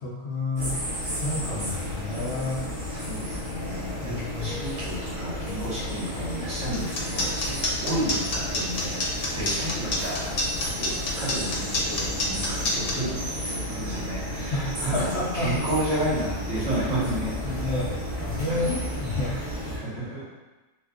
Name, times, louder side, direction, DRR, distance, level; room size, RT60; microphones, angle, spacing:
voice 1, 0.0-0.7 1.0-2.6 4.1-4.6 14.5-15.5 17.4-19.3, left 2 dB, 60° left, -8 dB, 0.7 m, -30 dB
sound 1, 0.6-19.8, equal, 30° right, 0.6 m, -33 dB
voice 2, 2.9-10.2 10.7-17.6 18.4-18.7 19.3-19.4 19.7-20.3, right 1 dB, 55° right, -8 dB, 1.3 m, -32 dB
sound 2, 6.7-12.9, left 2 dB, 80° left, 1.1 m, -27 dB
2.9 x 2.2 x 3.5 m, 1.1 s
omnidirectional pair, 1.6 m